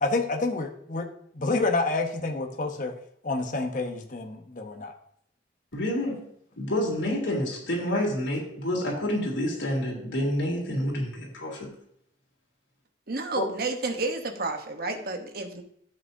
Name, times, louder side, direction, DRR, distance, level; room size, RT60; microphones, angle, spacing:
voice 1, 0.0-1.1 1.3-2.9 3.2-4.9 13.4-13.5, left 3 dB, 40° left, 4 dB, 1.0 m, -28 dB
voice 2, 5.7-6.2 6.6-11.7, left 1 dB, 70° left, -3 dB, 3.2 m, -28 dB
voice 3, 13.1-15.6, right 3 dB, 50° right, 5 dB, 1.0 m, -31 dB
12.0 x 7.8 x 2.7 m, 0.69 s
head